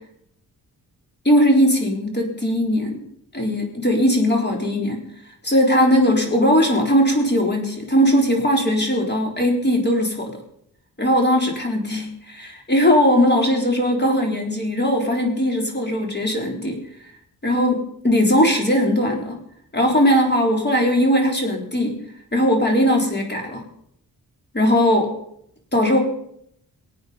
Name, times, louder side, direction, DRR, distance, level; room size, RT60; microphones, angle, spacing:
voice 1, 1.2-3.0 3.3-5.0 5.4-10.3 11.0-16.8 17.4-19.4 19.7-22.0 22.3-23.6 24.5-25.1 25.7-26.0, equal, 25° left, 1 dB, 4.0 m, -19 dB
23.5 x 8.8 x 5.3 m, 0.71 s
wide cardioid pair, 100°, 37 cm